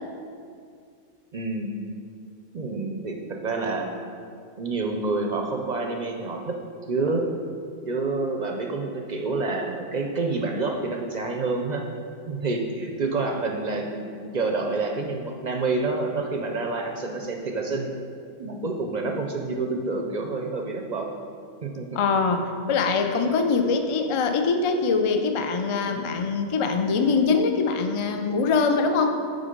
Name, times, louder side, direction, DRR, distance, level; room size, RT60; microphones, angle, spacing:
voice 1, 1.3-1.7 2.5-3.2 3.4-3.9 4.6-6.6 6.9-7.2 7.9-11.8 12.3-14.0 14.3-17.9 18.4-21.1 21.6-21.9, right 3 dB, 50° right, 2 dB, 0.6 m, -28 dB
voice 2, 21.9-29.2, left 4 dB, 50° left, 5 dB, 0.4 m, -23 dB
9.0 x 4.0 x 5.1 m, 2.3 s
omnidirectional pair, 1.2 m